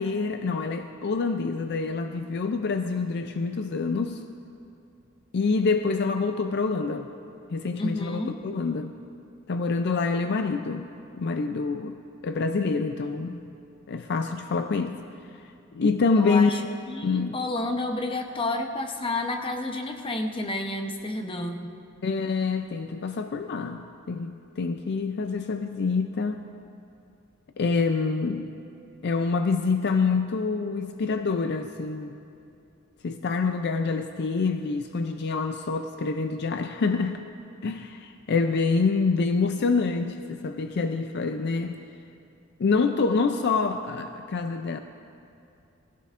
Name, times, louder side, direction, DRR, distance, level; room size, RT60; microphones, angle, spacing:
voice 1, 0.0-4.2 5.3-7.1 7.5-8.9 9.5-10.9 11.2-12.0 12.2-13.4 13.9-15.0 15.7-16.5 17.0-17.4 22.0-26.4 27.6-28.5 29.0-32.2 33.0-37.2 37.6-41.8 42.6-44.8, left 4 dB, 55° left, 7 dB, 0.4 m, -26 dB
voice 2, 7.8-8.4 13.3-13.4 16.1-21.7, left 2 dB, 25° left, 4 dB, 0.8 m, -30 dB
20.0 x 15.5 x 2.5 m, 2.5 s
head